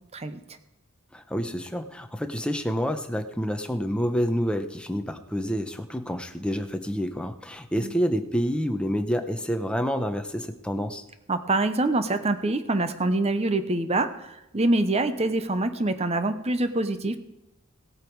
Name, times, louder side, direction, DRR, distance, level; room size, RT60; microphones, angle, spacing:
voice 1, 1.1-11.0, equal, 5° left, 6 dB, 0.8 m, -28 dB
voice 2, 11.3-14.1 14.5-17.2, right 2 dB, 30° right, 10 dB, 0.8 m, -25 dB
17.5 x 8.4 x 4.7 m, 0.89 s
head